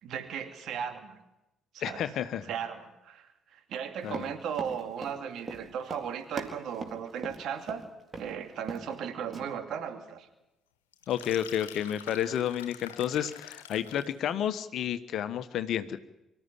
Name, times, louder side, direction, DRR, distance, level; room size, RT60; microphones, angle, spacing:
voice 1, 0.0-1.2 1.7-2.0 2.4-7.9 8.2-10.3, right 8 dB, 55° right, 7 dB, 2.6 m, -36 dB
voice 2, 1.8-2.5 4.0-4.3 11.1-16.0, left 10 dB, 55° left, 11 dB, 1.3 m, -31 dB
Run, 4.0-7.8 8.1-8.3 8.6-9.0 9.3-9.4, right 3 dB, 35° right, 3.9 m, -41 dB
sound 1, 10.9-14.2, left 10 dB, 75° left, 1.5 m, -46 dB
25.0 x 14.0 x 10.0 m, 0.90 s
figure-of-eight pair, 50°, 0 cm